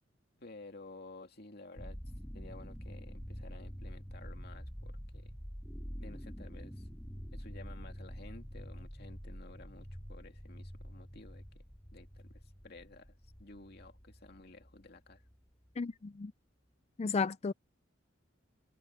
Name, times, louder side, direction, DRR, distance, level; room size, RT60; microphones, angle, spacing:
voice 1, 0.4-2.0 2.3-5.3 6.0-6.9 7.3-11.6 11.9-15.2, left 2 dB, 50° left, 2.5 m, -53 dB
sound 1, 1.8-15.7, equal, 10° left, 2.1 m, -47 dB
voice 2, 15.8-16.3 17.0-17.5, left 4 dB, 30° left, 0.4 m, -33 dB
head